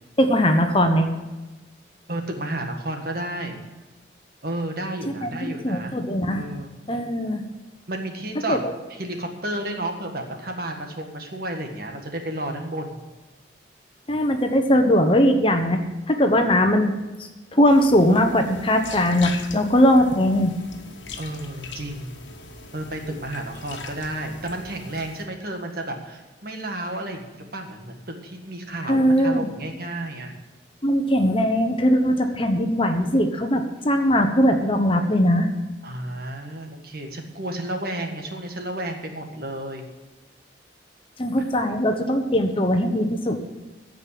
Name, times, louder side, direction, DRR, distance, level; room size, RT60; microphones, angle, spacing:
voice 1, 0.2-1.1 5.2-6.4 6.9-7.4 8.5-8.6 14.1-15.8 16.1-17.0 17.5-20.5 28.9-29.5 30.8-35.5 41.2-43.4, equal, 30° left, 5 dB, 1.0 m, -20 dB
voice 2, 2.1-3.6 4.4-5.9 6.3-6.7 7.9-8.6 8.9-13.0 21.2-22.2 22.7-28.0 28.2-30.3 35.8-39.9, right 1 dB, 55° right, 4 dB, 1.7 m, -32 dB
sound 1, 17.7-25.3, left 4 dB, 85° left, 1.5 m, -40 dB
15.5 x 5.4 x 8.4 m, 1.2 s
head